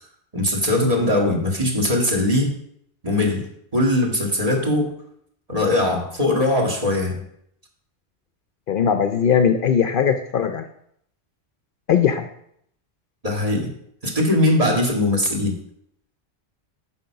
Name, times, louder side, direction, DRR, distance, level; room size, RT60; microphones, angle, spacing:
voice 1, 0.3-2.6 3.0-3.4 3.7-4.9 5.5-7.2 13.2-13.7 14.0-15.5, left 1 dB, 35° right, 0 dB, 2.0 m, -20 dB
voice 2, 8.7-10.7 11.9-12.3, left 7 dB, 60° left, 8 dB, 0.7 m, -19 dB
9.1 x 6.0 x 5.7 m, 0.71 s
omnidirectional pair, 1.1 m